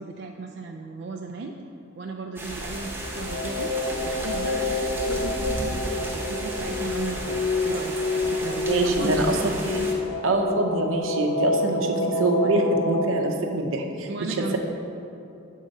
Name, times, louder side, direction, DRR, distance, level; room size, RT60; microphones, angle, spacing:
voice 1, 0.0-1.5 2.0-3.7 4.0-9.5 14.1-14.6, right 3 dB, 55° right, 1 dB, 0.3 m, -35 dB
sound 1, 2.4-9.9, right 1 dB, 10° right, 0.8 m, -34 dB
sound 2, 2.6-13.3, left 2 dB, 60° left, 0.6 m, -28 dB
voice 2, 8.7-9.8 10.2-14.6, right 2 dB, 85° right, 3 dB, 0.7 m, -25 dB
7.7 x 3.6 x 5.3 m, 2.6 s
head